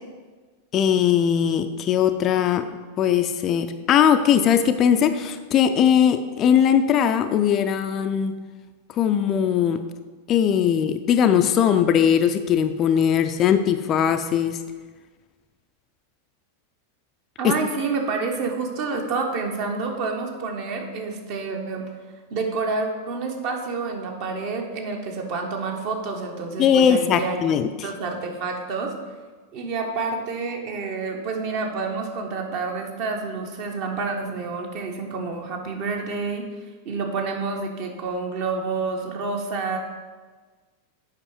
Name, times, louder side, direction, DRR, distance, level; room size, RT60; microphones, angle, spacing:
voice 1, 0.7-2.7 3.0-8.4 8.9-9.8 10.3-14.6 17.4-17.5 26.6-27.7, left 8 dB, 30° left, 8 dB, 0.4 m, -20 dB
voice 2, 17.4-21.8 22.3-27.5 27.8-28.9 29.5-36.5 36.8-39.8, right 4 dB, 45° right, 2 dB, 1.2 m, -28 dB
8.1 x 5.2 x 4.7 m, 1.4 s
figure-of-eight pair, 90°, 0 cm